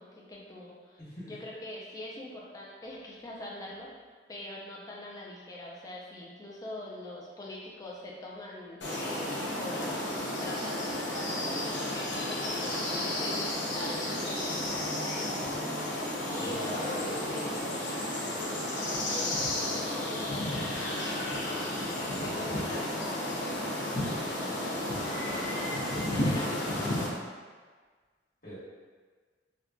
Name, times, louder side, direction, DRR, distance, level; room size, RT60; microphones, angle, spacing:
voice 1, 0.0-3.9 4.3-15.3 16.3-18.2 19.0-21.6 22.0-23.5 24.0-24.7 26.1-26.7, left 1 dB, 20° left, -3 dB, 0.4 m, -43 dB
voice 2, 1.0-1.3 16.3-17.4 28.4-28.6, equal, 50° left, -11 dB, 1.3 m, -41 dB
sound 1, 8.8-27.1, left 1 dB, 80° left, 0.7 m, -32 dB
3.5 x 2.6 x 2.3 m, 1.5 s
head